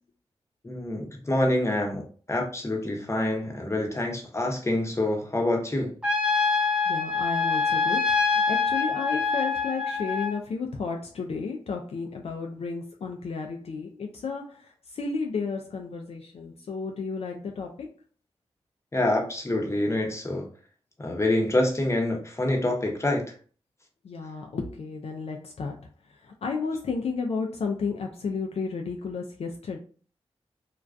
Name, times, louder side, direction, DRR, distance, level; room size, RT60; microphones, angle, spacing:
voice 1, 0.6-5.9 18.9-20.5 21.0-23.2, left 1 dB, 25° left, 1 dB, 0.8 m, -26 dB
Trumpet, 6.0-10.4, left 4 dB, 10° right, 0.8 m, -25 dB
voice 2, 6.9-17.9 24.0-29.8, left 4 dB, 65° left, 1 dB, 0.4 m, -33 dB
2.3 x 2.2 x 2.4 m, 0.41 s
cardioid pair, 40°, 11 cm